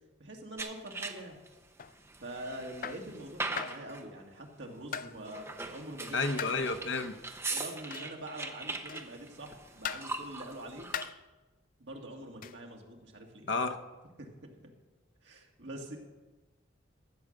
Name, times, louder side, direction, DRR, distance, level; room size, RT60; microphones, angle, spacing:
voice 1, 0.2-1.4 2.2-6.6 7.5-10.9 11.8-13.5 14.2-14.3 14.6-14.7 15.2-16.0, right 1 dB, 65° right, 1 dB, 2.0 m, -44 dB
sound 1, 0.6-1.5 2.0-4.1 5.2-11.1, right 3 dB, 15° right, 0.6 m, -41 dB
sound 2, 1.8-2.0 2.8-3.1 3.6-3.9 4.9-5.2 6.4-6.6 7.9-8.2 8.9-9.2 9.8-10.1 10.9-11.2 12.4-12.6, left 8 dB, 45° left, 0.3 m, -39 dB
voice 2, 6.1-7.2 13.5-13.8, left 3 dB, 70° left, 7 dB, 0.9 m, -31 dB
13.5 x 7.4 x 6.5 m, 1.2 s
head